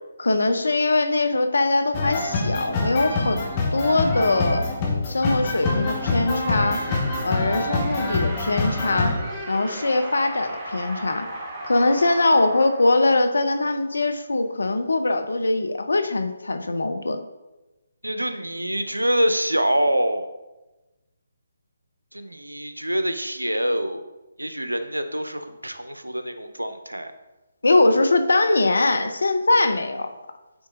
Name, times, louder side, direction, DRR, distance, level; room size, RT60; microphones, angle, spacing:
voice 1, 0.2-3.4 3.7-4.6 5.1-6.9 7.2-9.2 9.5-11.3 11.7-17.2 27.6-30.1, left 2 dB, 70° left, 8 dB, 0.7 m, -22 dB
sound 1, 1.9-9.1, left 3 dB, 25° left, 1.5 m, -25 dB
sound 2, 5.1-13.9, right 1 dB, 15° right, 1.2 m, -37 dB
voice 2, 18.0-20.3 22.1-24.0 24.4-27.1, equal, 85° right, 9 dB, 0.7 m, -25 dB
8.9 x 4.1 x 3.7 m, 1.1 s
figure-of-eight pair, 145°, 0 cm